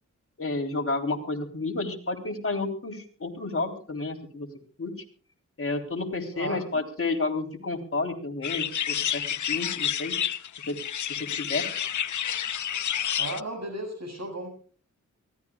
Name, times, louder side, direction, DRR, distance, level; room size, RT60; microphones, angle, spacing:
voice 1, 0.4-4.5 4.8-4.9 5.6-10.1 10.7-10.8 11.3-11.6, left 3 dB, 45° left, 2 dB, 3.8 m, -31 dB
sound 1, 8.4-13.4, left 9 dB, 70° left, 0.7 m, -29 dB
voice 2, 13.2-14.5, right 2 dB, 55° right, 6 dB, 7.4 m, -34 dB
23.5 x 16.5 x 2.4 m, 0.41 s
cardioid pair, 65°, 31 cm